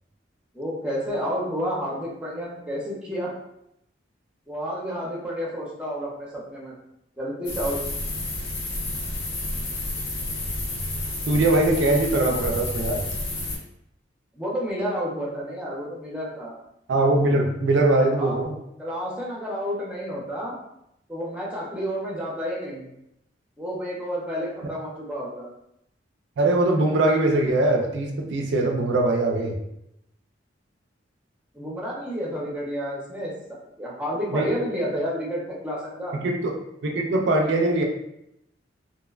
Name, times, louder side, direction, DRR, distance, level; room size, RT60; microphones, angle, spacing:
voice 1, 0.5-3.3 4.5-6.7 7.2-7.8 14.3-16.5 18.1-18.4 18.8-20.6 21.1-22.9 23.6-25.5 31.5-33.3 33.8-36.2, equal, 5° right, -4 dB, 0.5 m, -30 dB
sound 1, 7.4-13.6, left 1 dB, 80° left, 0.6 m, -30 dB
voice 2, 11.3-13.0 16.9-18.6 26.4-29.6 34.3-34.5 36.1-36.5 36.8-37.8, right 2 dB, 70° right, 2 dB, 0.4 m, -21 dB
2.6 x 2.1 x 2.3 m, 0.81 s
head